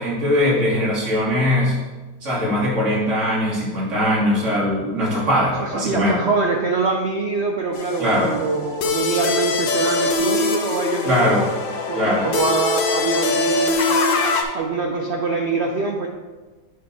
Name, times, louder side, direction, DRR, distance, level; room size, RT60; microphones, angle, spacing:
voice 1, 0.0-1.8 2.2-6.1 8.0-8.3 11.0-11.4 11.9-12.3 14.1-14.6, left 1 dB, 45° right, -6 dB, 2.3 m, -21 dB
voice 2, 5.8-11.4 11.9-13.8 14.5-16.1, right 4 dB, 85° right, 1 dB, 0.5 m, -24 dB
sound 1, 7.7-14.4, left 3 dB, 90° left, 1.5 m, -23 dB
7.9 x 4.6 x 4.0 m, 1.2 s
omnidirectional pair, 1.9 m